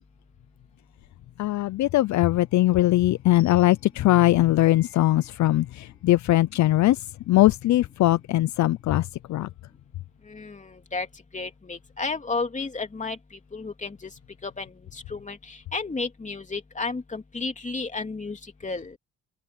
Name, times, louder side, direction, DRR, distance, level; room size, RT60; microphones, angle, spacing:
voice 1, 1.4-9.5, left 15 dB, 70° left, 0.6 m, -21 dB
Wind chime, 4.6-6.0, left 2 dB, 75° right, 4.8 m, -58 dB
voice 2, 10.3-11.1 11.3-13.2 13.5-14.1 14.4-19.0, left 3 dB, 25° left, 3.2 m, -32 dB
cardioid pair, 90°, 30 cm